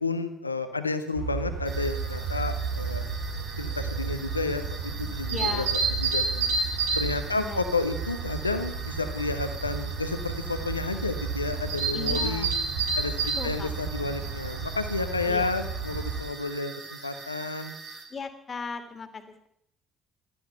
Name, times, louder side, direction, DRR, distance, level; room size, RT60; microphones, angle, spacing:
voice 1, 0.0-3.0 3.6-6.5 7.0-12.5 13.0-17.7, left 3 dB, 85° left, 10 dB, 1.1 m, -31 dB
sound 1, 1.1-16.2, right 4 dB, 75° right, 2.3 m, -31 dB
sound 2, 1.6-18.0, right 4 dB, 45° right, 3.7 m, -43 dB
voice 2, 5.3-5.7 7.3-7.6 11.9-12.5 13.4-13.7 15.3-15.5 18.1-19.5, left 4 dB, 35° left, 9 dB, 2.3 m, -37 dB
17.5 x 13.5 x 5.8 m, 0.75 s
figure-of-eight pair, 50°, 0 cm